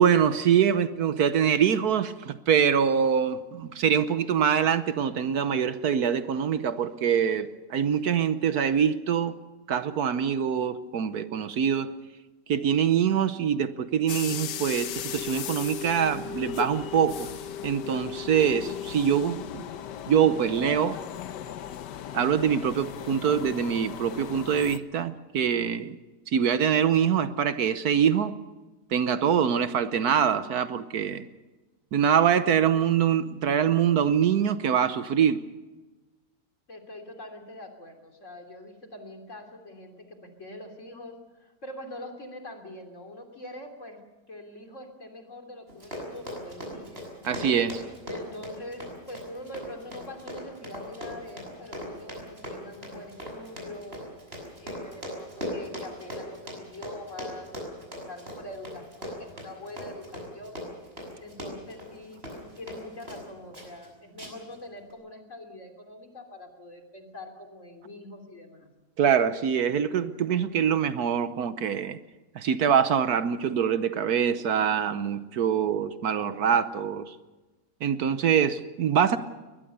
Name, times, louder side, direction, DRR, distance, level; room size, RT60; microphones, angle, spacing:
voice 1, 0.0-9.4 9.7-11.9 12.5-17.3 17.6-19.6 20.1-21.0 22.1-25.9 26.3-28.3 28.9-31.3 31.9-35.4 47.2-47.8 69.0-72.0 72.3-77.1 77.8-79.2, right 8 dB, 70° right, 12 dB, 1.3 m, -24 dB
sound 1, 14.1-24.8, left 9 dB, 90° left, 1.5 m, -37 dB
voice 2, 36.7-41.1 41.4-44.0 44.3-47.2 48.0-54.0 54.6-57.5 57.9-60.6 61.2-68.7, left 1 dB, 45° left, 3 dB, 3.4 m, -44 dB
Run, 45.7-63.3 63.5-63.9 64.2-64.5 64.9-65.0, equal, 35° right, 6.7 m, -39 dB
21.0 x 21.0 x 6.9 m, 1.2 s
omnidirectional pair, 1.8 m